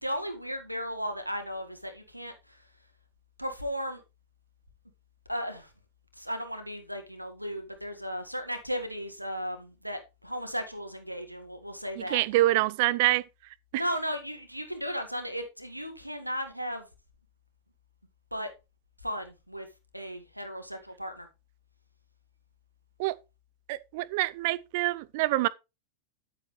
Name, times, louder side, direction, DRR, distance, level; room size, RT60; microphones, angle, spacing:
voice 1, 0.0-2.6 3.4-4.0 5.3-5.7 6.2-12.2 13.7-16.9 18.3-18.5 19.0-19.7 19.9-21.3, equal, 90° right, 1.7 m, -35 dB
voice 2, 12.0-13.2 23.0-23.1 23.7-25.5, right 17 dB, 50° right, 0.5 m, -26 dB
10.0 x 9.0 x 3.2 m
figure-of-eight pair, 90°, 0 cm